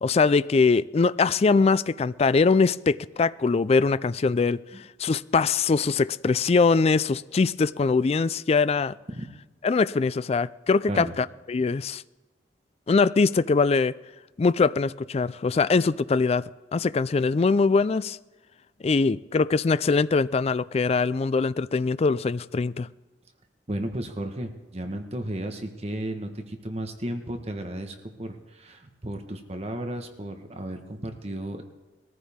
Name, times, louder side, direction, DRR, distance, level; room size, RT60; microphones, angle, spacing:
voice 1, 0.0-8.9 9.6-12.0 12.9-13.9 14.4-18.2 18.8-22.9, left 4 dB, 35° left, 0.3 m, -22 dB
voice 2, 23.7-31.6, right 1 dB, 35° right, 1.3 m, -34 dB
21.0 x 14.0 x 3.6 m
head